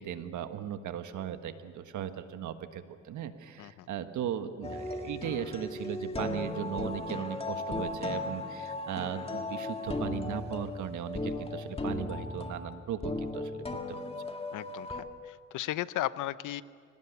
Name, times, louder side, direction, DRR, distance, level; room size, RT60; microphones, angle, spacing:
voice 1, 0.0-14.1, right 9 dB, 75° right, 9 dB, 1.6 m, -37 dB
sound 1, 4.6-15.0, left 2 dB, 20° left, 1.9 m, -36 dB
voice 2, 14.5-14.9 15.3-16.6, left 14 dB, 80° left, 16 dB, 0.8 m, -35 dB
24.5 x 18.5 x 8.4 m, 2.1 s
cardioid pair, 90°, 30 cm